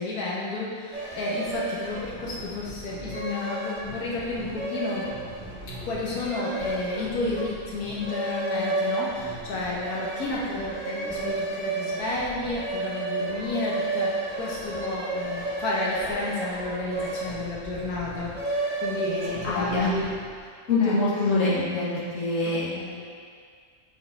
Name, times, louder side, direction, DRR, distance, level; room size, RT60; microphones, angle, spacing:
voice 1, 0.0-5.0 5.8-20.1 20.8-21.2 22.4-23.0, left 2 dB, 85° left, -5 dB, 1.7 m, -31 dB
sound 1, 0.9-20.3, right 2 dB, 35° right, 1.5 m, -33 dB
voice 2, 19.1-19.9 20.7-21.9 22.2-22.7, left 3 dB, 60° left, -8 dB, 2.0 m, -24 dB
6.7 x 5.2 x 4.2 m, 2.1 s
omnidirectional pair, 1.5 m